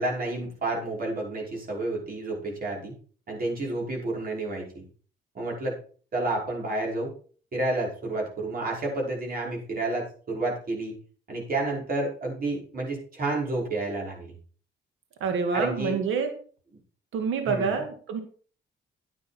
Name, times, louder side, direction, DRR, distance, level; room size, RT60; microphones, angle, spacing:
voice 1, 0.0-2.9 3.3-4.8 5.3-5.8 6.1-7.1 7.5-10.9 11.3-14.3 15.5-16.0 17.5-17.8, right 2 dB, 45° right, -2 dB, 5.7 m, -30 dB
voice 2, 15.2-16.3 17.1-18.2, right 5 dB, 80° right, 6 dB, 2.1 m, -27 dB
10.5 x 9.2 x 4.4 m, 0.42 s
cardioid pair, 90°, 20 cm